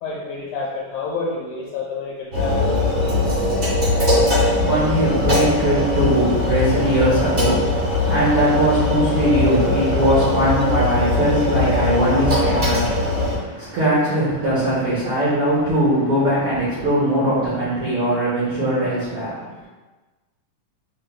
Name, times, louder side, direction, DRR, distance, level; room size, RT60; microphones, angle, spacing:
voice 1, 0.0-3.4 19.5-19.7, left 4 dB, 70° left, -5 dB, 2.1 m, -29 dB
sound 1, 2.3-13.3, left 2 dB, 40° right, 0.8 m, -20 dB
voice 2, 3.8-19.4, right 1 dB, 70° right, -10 dB, 1.3 m, -20 dB
6.1 x 2.2 x 3.4 m, 1.2 s
omnidirectional pair, 3.8 m